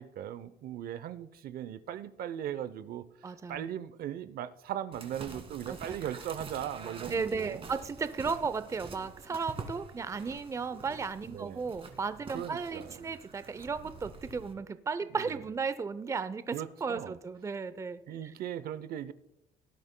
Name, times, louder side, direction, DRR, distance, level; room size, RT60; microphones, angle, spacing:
voice 1, 0.0-7.7 11.2-11.7 12.3-13.1 15.2-15.4 16.5-17.1 18.1-19.1, right 10 dB, 60° right, 14 dB, 0.6 m, -39 dB
voice 2, 3.2-3.7 5.7-6.0 7.1-18.3, right 5 dB, 20° right, 13 dB, 0.5 m, -35 dB
sound 1, 4.9-14.5, right 4 dB, 35° right, 2.0 m, -46 dB
18.0 x 11.0 x 2.2 m, 0.89 s
cardioid pair, 110°, 17 cm